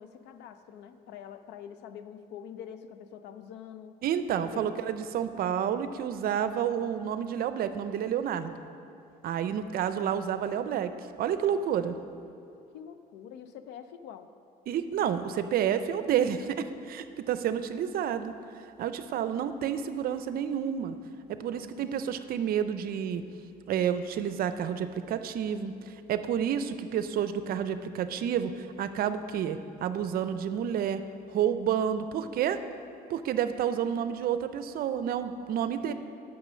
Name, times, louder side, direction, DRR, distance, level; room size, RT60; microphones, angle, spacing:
voice 1, 0.0-4.0 4.5-4.8 12.7-14.3 21.5-21.9 35.7-35.9, left 8 dB, 85° left, 10 dB, 0.6 m, -45 dB
voice 2, 4.0-8.6 9.2-10.9 11.2-12.0 14.7-18.3 18.8-21.0 21.4-23.2 23.7-31.0 31.3-32.6 33.1-35.9, right 9 dB, 60° right, 11 dB, 0.6 m, -30 dB
8.9 x 6.1 x 6.2 m, 2.8 s
cardioid pair, 110°, 17 cm